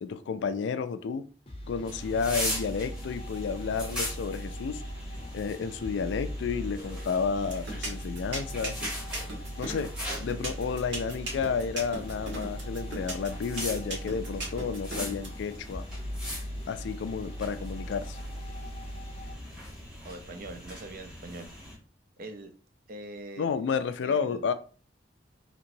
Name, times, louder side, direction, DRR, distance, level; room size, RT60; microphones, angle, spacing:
voice 1, 0.0-1.2 1.7-4.8 5.3-8.8 9.6-9.9 10.2-15.8 16.7-18.2 23.4-24.5, left 5 dB, 80° left, 0.3 m, -31 dB
sound 1, 1.5-19.3, equal, 35° left, 0.6 m, -39 dB
sound 2, 1.8-21.8, left 1 dB, 5° right, 1.1 m, -41 dB
sound 3, 7.5-15.3, right 2 dB, 75° right, 1.1 m, -36 dB
voice 2, 20.0-21.5 22.2-22.5 22.9-23.6 24.0-24.4, right 2 dB, 50° right, 0.5 m, -42 dB
2.9 x 2.9 x 2.6 m
head